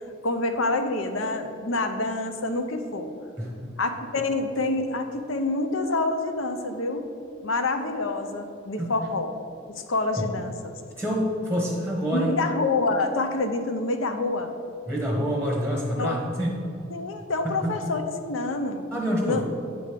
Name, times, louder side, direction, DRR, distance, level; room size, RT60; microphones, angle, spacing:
voice 1, 0.2-3.1 3.8-7.0 7.4-9.3 9.7-10.7 12.1-14.5 16.0-16.2 16.9-18.8 19.3-19.4, left 2 dB, 70° left, 7 dB, 0.7 m, -27 dB
voice 2, 11.0-12.3 14.9-16.7 17.4-17.7 18.9-19.4, equal, 5° left, -3 dB, 1.1 m, -27 dB
8.5 x 5.1 x 5.1 m, 2.4 s
head